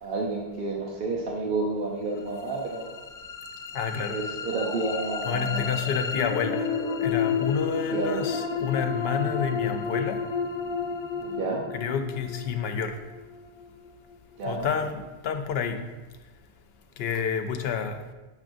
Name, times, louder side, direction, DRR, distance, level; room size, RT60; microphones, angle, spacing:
voice 1, 0.0-3.0 4.1-5.7 7.9-8.2 11.2-11.6 14.4-14.7, right 3 dB, 60° right, -2 dB, 0.9 m, -30 dB
sound 1, 2.3-14.4, left 5 dB, 45° left, 0.4 m, -32 dB
voice 2, 3.7-4.1 5.2-6.6 7.0-10.2 11.7-12.9 14.4-15.8 17.0-18.0, left 7 dB, 75° left, 6 dB, 0.8 m, -29 dB
sound 2, 4.5-12.2, left 1 dB, ahead, 1.0 m, -43 dB
6.0 x 6.0 x 2.6 m, 1.2 s
omnidirectional pair, 1.1 m